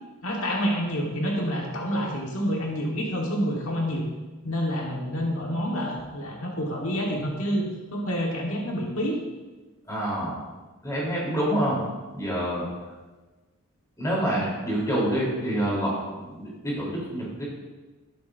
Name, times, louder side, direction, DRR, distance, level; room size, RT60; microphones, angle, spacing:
voice 1, 0.2-4.0 4.4-9.2, equal, 70° left, -1 dB, 1.6 m, -28 dB
voice 2, 9.9-10.4 10.8-11.8 12.1-12.7 14.0-17.4, right 1 dB, 15° left, -5 dB, 3.6 m, -27 dB
12.0 x 11.5 x 2.7 m, 1.2 s
head